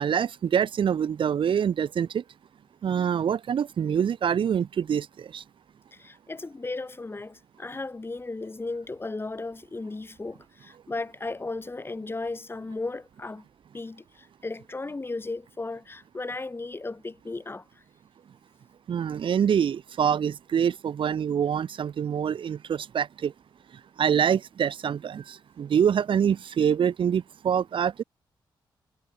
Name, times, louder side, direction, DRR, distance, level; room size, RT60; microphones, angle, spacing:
voice 1, 0.0-2.2 2.8-5.4 18.9-23.3 24.0-28.0, right 8 dB, 70° right, 2.1 m, -25 dB
voice 2, 5.9-13.5 13.7-17.8, left 3 dB, 25° left, 7.3 m, -35 dB
cardioid pair, 90°, 9 cm